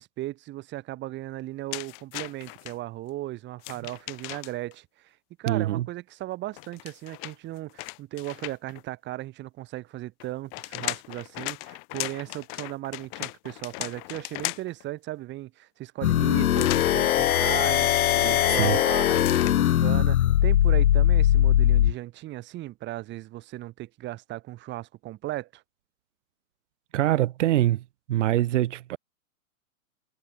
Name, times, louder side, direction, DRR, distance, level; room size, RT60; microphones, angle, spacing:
voice 1, 0.0-25.6, right 16 dB, 25° right, 2.8 m, -36 dB
sound 1, 1.7-2.7 3.6-4.7 6.5-8.8 10.2-14.8 16.5-17.0 19.1-19.6, left 33 dB, 30° left, 1.4 m, -37 dB
voice 2, 5.5-5.9 18.1-18.8 26.9-27.8 28.1-29.0, right 14 dB, 55° right, 1.3 m, -24 dB
sound 2, 16.0-21.9, left 12 dB, 85° left, 0.6 m, -21 dB
hypercardioid pair, 135°, 42 cm